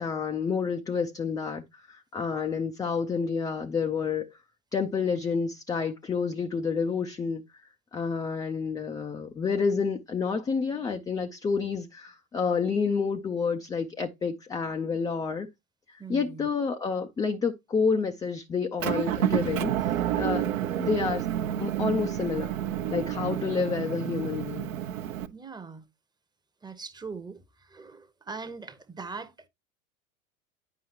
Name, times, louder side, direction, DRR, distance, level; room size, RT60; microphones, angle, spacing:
voice 1, 0.0-4.4 4.7-15.5 15.9-19.7 20.2-20.5 20.8-21.3 21.6-22.5 22.9-24.7, left 5 dB, 10° left, 0.4 m, -29 dB
voice 2, 16.0-16.5 20.9-21.1 25.3-25.9 26.6-29.5, right 4 dB, 10° right, 0.9 m, -41 dB
Motor vehicle (road) / Engine, 18.8-25.3, right 11 dB, 65° right, 0.9 m, -29 dB
9.6 x 5.3 x 2.8 m
figure-of-eight pair, 80°, 42 cm